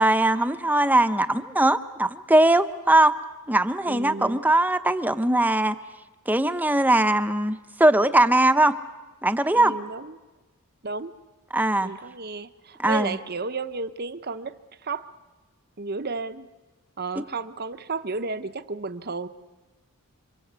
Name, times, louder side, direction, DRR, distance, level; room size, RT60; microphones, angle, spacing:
voice 1, 0.0-3.1 3.5-5.8 6.3-8.8 9.2-9.7 11.5-11.9 12.8-13.2, right 1 dB, 10° right, 0.9 m, -20 dB
voice 2, 3.9-4.4 9.5-10.2 10.8-11.1 11.8-14.6 14.8-15.1 15.8-16.5 17.0-19.3, right 4 dB, 45° right, 1.0 m, -32 dB
27.5 x 26.5 x 8.2 m
head